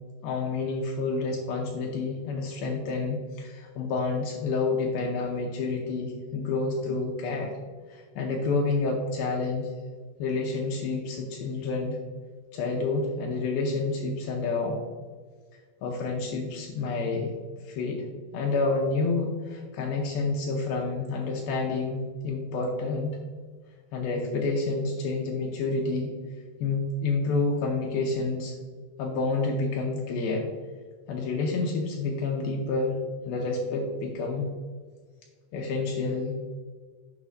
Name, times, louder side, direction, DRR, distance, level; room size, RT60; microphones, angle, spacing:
voice 1, 0.2-7.6 7.9-9.7 10.2-12.0 12.5-14.8 15.8-17.3 17.7-18.1 18.3-23.2 23.9-26.1 26.6-28.5 29.0-30.5 31.1-33.0 33.3-34.5 35.5-36.4, left 3 dB, 80° left, 0 dB, 2.2 m, -29 dB
9.5 x 5.6 x 2.6 m, 1.5 s
omnidirectional pair, 5.0 m